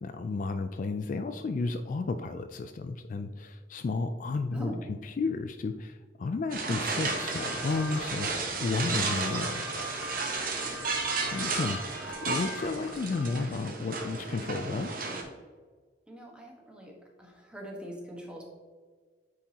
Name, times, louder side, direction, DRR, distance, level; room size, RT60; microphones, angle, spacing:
voice 1, 0.0-9.7 11.3-15.1, left 3 dB, 45° left, 8 dB, 0.3 m, -33 dB
sound 1, 6.5-15.2, right 4 dB, 50° right, 1.0 m, -33 dB
sound 2, 6.9-13.5, left 1 dB, 90° left, 0.8 m, -42 dB
voice 2, 16.1-16.9 17.2-18.5, equal, 5° right, -1 dB, 1.2 m, -43 dB
8.8 x 4.7 x 2.8 m, 1.5 s
head